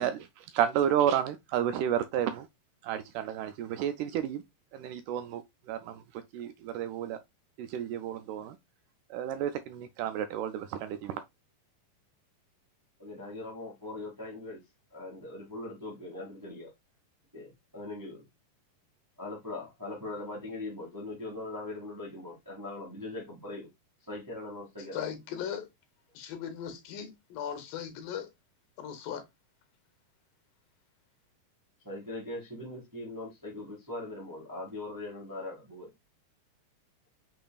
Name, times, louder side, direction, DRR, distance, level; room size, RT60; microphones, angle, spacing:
voice 1, 0.0-2.5 2.8-4.4 4.7-5.4 5.7-6.0 6.3-7.2 7.6-8.6 9.1-11.2, right 10 dB, 80° right, 1.9 m, -31 dB
voice 2, 13.0-14.6 14.9-16.7 17.3-18.2 19.2-23.7 24.1-25.0 31.8-35.9, left 2 dB, 20° right, 0.5 m, -40 dB
voice 3, 24.9-25.7 26.1-28.3 28.8-29.3, left 8 dB, 85° left, 2.7 m, -38 dB
6.7 x 3.3 x 2.3 m
omnidirectional pair, 3.9 m